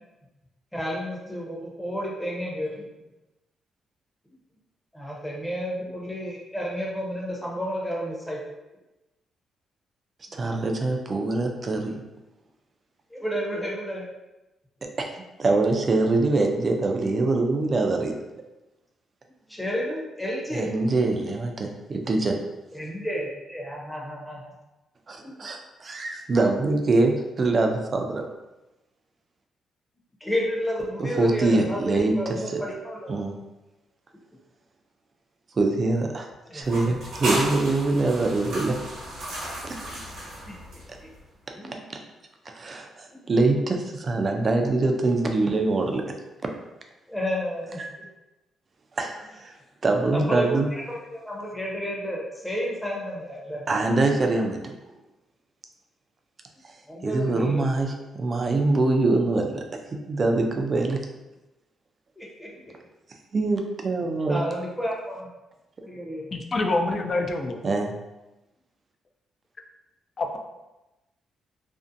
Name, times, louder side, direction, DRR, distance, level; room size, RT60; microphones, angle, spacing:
voice 1, 0.7-2.8 4.9-8.4 13.1-14.0 19.5-20.8 22.7-24.5 25.2-25.4 30.2-33.1 36.5-37.3 40.1-40.3 40.7-40.8 41.6-41.8 43.1-43.2 47.1-47.8 50.1-53.9 56.9-57.6 62.2-62.7 64.3-65.3 65.8-66.4, equal, 10° left, -3 dB, 0.7 m, -31 dB
voice 2, 10.3-12.0 15.0-15.1 15.4-18.1 20.5-22.3 25.1-28.3 31.0-32.1 32.5-32.6 33.1-33.3 35.6-36.3 36.5-38.8 39.6-39.7 41.9-42.0 42.5-46.0 47.8-47.9 49.0-49.5 49.8-50.7 53.7-54.7 57.0-59.6 59.9-61.0 63.3-64.4 67.6-67.9, right 2 dB, 40° right, 3 dB, 0.3 m, -24 dB
sound 1, 36.6-41.2, right 1 dB, 80° right, 0.9 m, -33 dB
voice 3, 66.3-67.6 70.2-70.4, left 2 dB, 40° left, 4 dB, 0.3 m, -26 dB
2.5 x 2.1 x 2.5 m, 1.0 s
cardioid pair, 100°, 0 cm